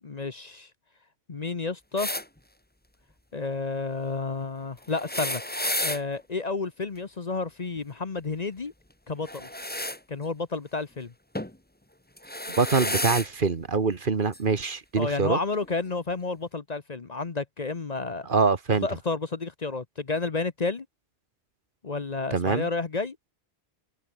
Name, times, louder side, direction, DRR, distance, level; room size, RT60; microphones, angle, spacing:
voice 1, 0.0-0.7 1.3-2.1 3.3-5.4 5.8-8.7 9.1-9.5 10.1-11.1 15.0-18.3 18.8-20.8 21.8-23.2, left 3 dB, 40° left, 1.1 m, -31 dB
sound 1, 2.0-2.2 4.9-6.0 9.2-10.0 11.3-11.6 12.2-13.3 14.3-14.4 15.6-15.7, left 1 dB, 10° left, 1.6 m, -31 dB
voice 2, 12.6-15.4 18.3-18.9 22.3-22.7, right 4 dB, 50° right, 1.5 m, -24 dB
omnidirectional pair, 1.1 m